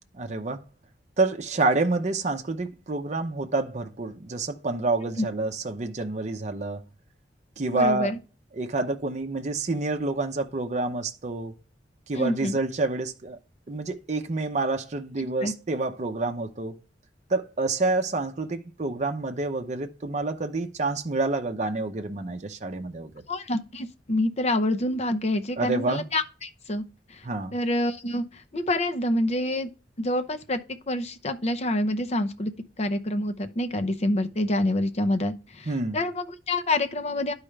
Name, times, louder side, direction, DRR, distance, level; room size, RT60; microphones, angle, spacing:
voice 1, 0.1-0.6 1.2-6.8 7.6-8.1 8.5-11.5 12.1-13.4 13.7-16.7 17.3-23.1 25.6-26.0 27.2-27.5 35.7-36.0, right 3 dB, 40° right, 0.7 m, -28 dB
voice 2, 7.7-8.2 12.1-12.6 15.4-15.5 23.3-26.8 27.1-27.2 27.5-29.7 30.0-30.6 30.9-32.5 32.8-37.3, left 1 dB, 35° left, 0.7 m, -27 dB
11.0 x 4.8 x 3.2 m
head